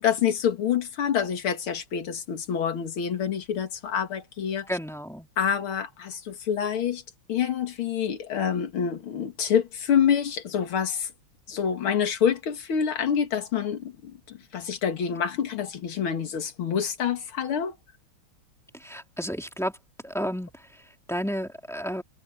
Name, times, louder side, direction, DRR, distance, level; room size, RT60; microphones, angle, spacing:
voice 1, 0.0-4.7 5.4-7.0 7.3-11.1 11.5-17.8, left 8 dB, 70° left, 2.6 m, -27 dB
voice 2, 4.7-5.3 18.7-19.8 20.0-22.0, equal, ahead, 2.3 m, -32 dB
omnidirectional pair, 2.4 m